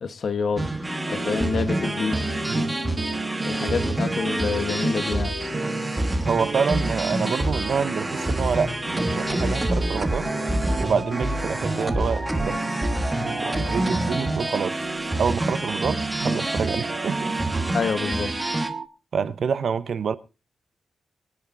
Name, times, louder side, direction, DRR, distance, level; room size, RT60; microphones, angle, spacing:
voice 1, 0.0-0.7 1.1-2.3 3.5-5.3 17.7-18.3, left 5 dB, 60° left, 1.2 m, -27 dB
sound 1, 0.6-18.7, right 1 dB, 15° right, 1.3 m, -27 dB
sound 2, 0.9-15.8, left 6 dB, 85° left, 2.4 m, -41 dB
sound 3, 1.0-18.9, right 4 dB, 40° right, 1.0 m, -33 dB
voice 2, 6.3-10.3 10.8-12.6 13.2-14.8 15.2-17.3 19.1-20.2, right 6 dB, 65° right, 0.8 m, -27 dB
24.0 x 10.0 x 2.5 m
wide cardioid pair, 130°, 0 cm